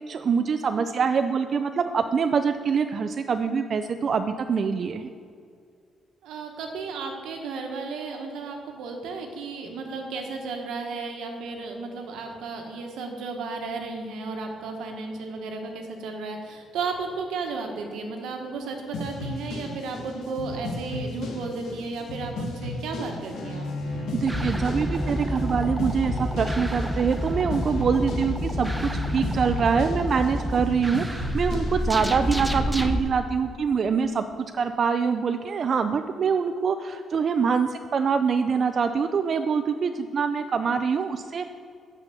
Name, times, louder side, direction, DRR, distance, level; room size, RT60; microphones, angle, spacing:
voice 1, 0.1-5.1 24.1-41.5, right 6 dB, 50° right, 8 dB, 0.4 m, -25 dB
voice 2, 6.2-23.7, right 4 dB, 85° right, 3 dB, 1.3 m, -34 dB
sound 1, 18.9-32.6, left 2 dB, 85° left, 1.4 m, -35 dB
Bowed string instrument, 23.3-30.0, left 2 dB, 55° left, 1.7 m, -36 dB
sound 2, 24.3-33.0, equal, 10° right, 0.7 m, -29 dB
7.0 x 5.7 x 6.8 m, 2.3 s
cardioid pair, 90°, 0 cm